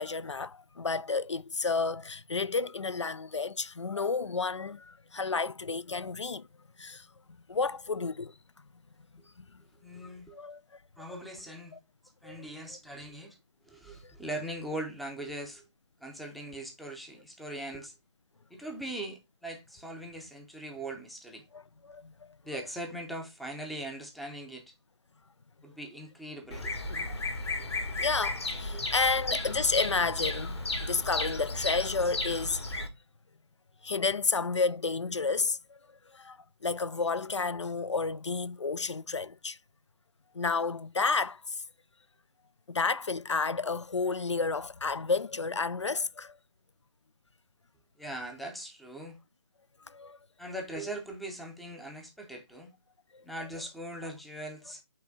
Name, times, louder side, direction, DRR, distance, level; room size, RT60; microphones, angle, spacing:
voice 1, 0.0-6.5 6.8-7.1 7.5-8.3 10.3-10.6 12.2-12.4 14.0-14.1 21.5-22.1 26.9-27.2 28.0-32.6 33.8-35.8 36.1-36.4 36.6-39.6 40.3-41.6 42.7-46.3 49.9-50.2 53.1-53.2, left 4 dB, 85° left, 0.4 m, -31 dB
voice 2, 9.8-10.4 11.0-11.8 12.2-13.4 13.7-15.6 16.0-17.9 18.5-21.4 22.4-24.7 25.6-26.8 27.5-28.0 28.7-28.9 48.0-49.2 50.4-52.7 53.2-54.8, right 1 dB, ahead, 0.5 m, -40 dB
Bird vocalization bird call bird song, 26.5-32.9, left 2 dB, 65° left, 1.8 m, -34 dB
8.5 x 3.4 x 3.5 m
figure-of-eight pair, 150°, 15 cm